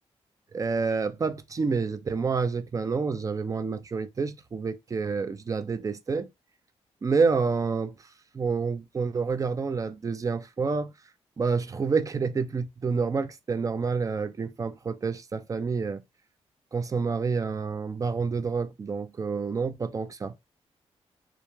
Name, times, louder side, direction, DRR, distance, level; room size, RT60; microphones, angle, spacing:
voice 1, 0.5-6.3 7.0-7.9 8.3-10.9 11.4-16.0 16.7-20.4, right 5 dB, 30° right, 0.4 m, -28 dB
2.4 x 2.2 x 3.1 m
cardioid pair, 85°, 11 cm